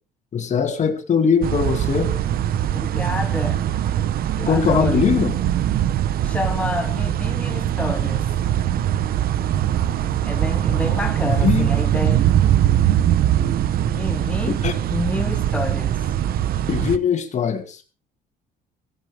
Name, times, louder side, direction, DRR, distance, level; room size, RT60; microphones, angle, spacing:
voice 1, 0.3-2.1 4.4-5.3 11.2-11.7 14.5-14.7 16.7-17.8, left 6 dB, 45° left, 2.4 m, -21 dB
sound 1, 1.4-17.0, right 11 dB, 60° right, 0.9 m, -21 dB
voice 2, 2.7-3.6 4.4-5.1 6.2-8.3 10.2-12.3 13.8-14.6 14.9-16.0, left 2 dB, 5° left, 1.3 m, -28 dB
17.0 x 16.0 x 3.5 m
cardioid pair, 110°, 17 cm